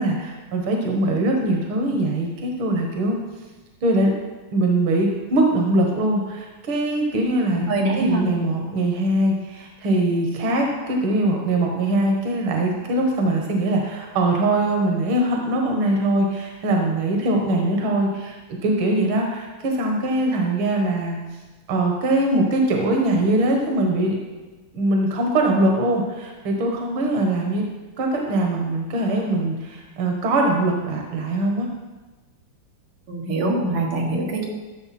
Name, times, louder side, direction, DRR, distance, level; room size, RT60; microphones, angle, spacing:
voice 1, 0.0-3.2 3.8-4.1 4.5-7.7 8.0-21.2 21.7-24.2 24.7-27.6 28.0-31.7, right 1 dB, 70° right, 1 dB, 2.1 m, -22 dB
voice 2, 7.7-8.2 33.1-34.5, right 2 dB, 90° right, -1 dB, 2.5 m, -23 dB
13.5 x 6.7 x 4.3 m, 1.2 s
omnidirectional pair, 2.4 m